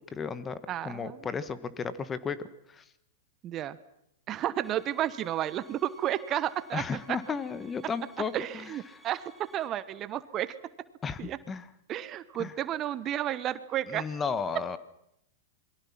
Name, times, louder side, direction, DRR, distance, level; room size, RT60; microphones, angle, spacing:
voice 1, 0.1-2.8 6.7-9.0 11.0-11.7 12.4-12.5 13.9-14.8, left 5 dB, 20° left, 14 dB, 1.6 m, -34 dB
voice 2, 0.7-1.2 3.4-3.8 4.3-6.8 7.1-7.2 8.3-10.6 11.2-11.4 11.9-14.1, right 12 dB, 30° right, 15 dB, 1.2 m, -32 dB
sound 1, 4.6-9.7, right 1 dB, 5° right, 4.5 m, -58 dB
27.5 x 22.5 x 6.0 m, 0.78 s
figure-of-eight pair, 105°, 0 cm